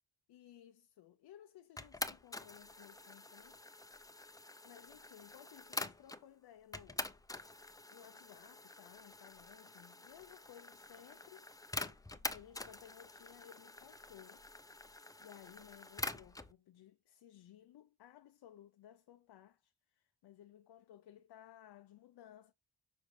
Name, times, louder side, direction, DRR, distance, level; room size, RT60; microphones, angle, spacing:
voice 1, 0.3-4.2 4.6-7.1 7.9-11.5 12.3-14.5 15.2-22.5, left 11 dB, 60° left, 0.6 m, -59 dB
sound 1, 1.8-6.2 6.7-16.5, left 2 dB, 10° left, 0.6 m, -46 dB
6.6 x 5.0 x 3.2 m
cardioid pair, 80°, 44 cm